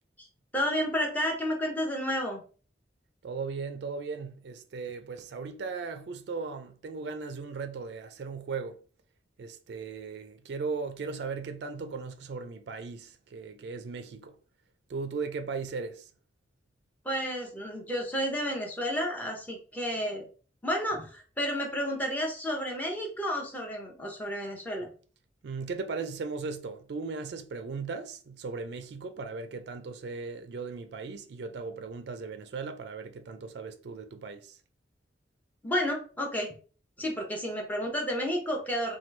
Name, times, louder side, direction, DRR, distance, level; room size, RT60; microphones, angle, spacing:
voice 1, 0.5-2.4 17.0-20.3 20.6-24.9 35.6-36.5 37.0-39.0, equal, 10° left, 0.7 m, -31 dB
voice 2, 3.2-8.8 9.4-14.4 14.9-16.1 25.4-34.6, right 4 dB, 65° right, 0.3 m, -37 dB
3.0 x 2.2 x 3.2 m
head